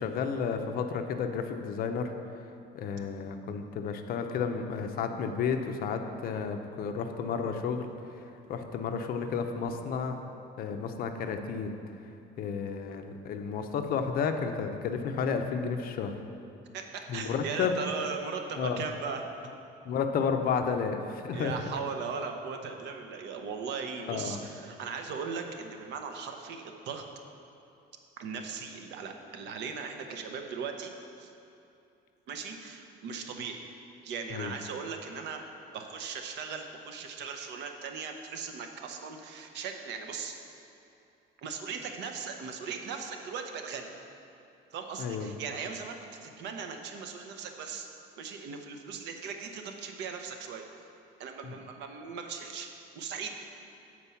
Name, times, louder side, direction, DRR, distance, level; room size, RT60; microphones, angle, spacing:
voice 1, 0.0-2.1 2.7-7.9 8.5-10.2 10.6-11.7 12.4-16.2 17.1-17.7 18.6-18.8 19.8-21.6 24.1-24.4 34.3-34.5 45.0-45.3 51.4-51.6, left 6 dB, 50° left, 6 dB, 0.6 m, -32 dB
voice 2, 16.7-19.3 21.3-27.0 28.2-30.9 31.2-31.3 32.3-33.6 34.0-35.4 35.7-40.3 41.4-43.9 44.7-47.9 48.2-50.6 51.2-52.7 52.9-53.4, right 5 dB, 70° right, 4 dB, 0.8 m, -38 dB
8.4 x 4.5 x 5.6 m, 2.8 s
cardioid pair, 145°, 19 cm